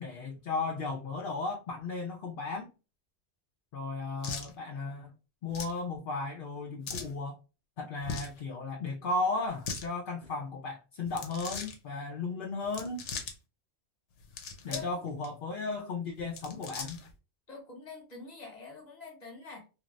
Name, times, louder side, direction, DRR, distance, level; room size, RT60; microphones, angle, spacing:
voice 1, 0.0-2.7 3.7-5.1 5.4-7.4 7.8-13.0 14.6-17.0, left 3 dB, 60° left, 0.6 m, -35 dB
sound 1, 4.2-4.5 5.5-5.8 6.8-7.1 8.0-8.4 9.5-9.9 11.1-11.8 12.6-13.3 14.2-14.9 15.2-15.3 16.2-17.1, left 5 dB, 85° left, 1.0 m, -39 dB
voice 2, 17.5-19.6, left 4 dB, 40° left, 1.2 m, -45 dB
3.0 x 2.5 x 2.4 m
omnidirectional pair, 1.2 m